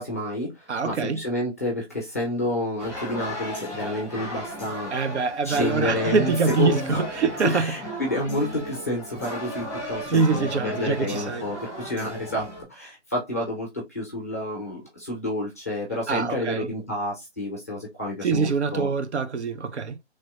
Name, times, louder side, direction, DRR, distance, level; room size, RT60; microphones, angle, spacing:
voice 1, 0.0-4.9 5.4-7.1 7.4-18.9, left 1 dB, 15° left, 0.5 m, -29 dB
voice 2, 0.7-1.2 4.9-7.7 10.1-11.5 16.1-16.7 18.2-20.0, right 4 dB, 70° right, 0.6 m, -24 dB
sound 1, 2.8-12.6, equal, 5° right, 1.7 m, -35 dB
3.2 x 3.0 x 2.3 m
figure-of-eight pair, 155°, 36 cm